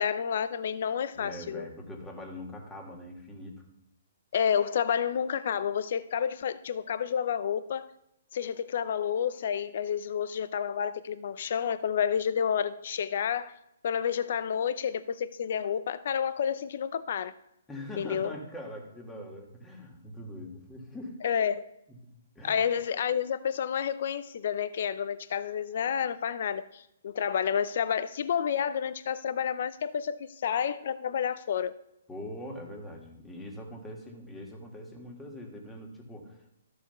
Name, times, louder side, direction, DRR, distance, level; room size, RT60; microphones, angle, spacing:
voice 1, 0.0-1.7 4.3-7.9 8.3-13.5 13.8-17.3 18.0-18.3 21.2-21.6 22.4-31.7, left 8 dB, 55° left, 0.5 m, -30 dB
voice 2, 1.2-3.7 17.7-21.2 21.9-22.0 22.4-22.6 32.1-36.5, left 1 dB, 10° left, 2.0 m, -42 dB
13.0 x 5.0 x 6.8 m
hypercardioid pair, 150°, 0 cm